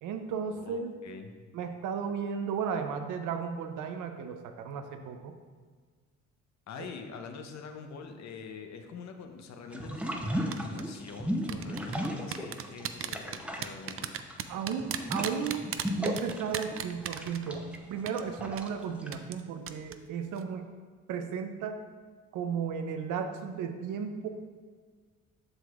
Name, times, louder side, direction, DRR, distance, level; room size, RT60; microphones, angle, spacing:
voice 1, 0.0-0.9 1.5-5.3 14.5-20.7 21.1-21.8 22.3-24.3, right 6 dB, 90° right, 6 dB, 0.6 m, -34 dB
voice 2, 0.5-1.3 6.7-14.1, left 5 dB, 65° left, 5 dB, 0.8 m, -44 dB
sound 1, 9.7-12.8 13.1-19.1, equal, 5° right, 0.6 m, -35 dB
sound 2, 10.5-10.8 11.5-17.8 18.1-18.2 18.6-18.7 19.1-19.4 19.7-20.0 20.3-20.4, right 10 dB, 50° right, 0.4 m, -36 dB
7.7 x 6.0 x 2.4 m, 1.5 s
cardioid pair, 90°, 30 cm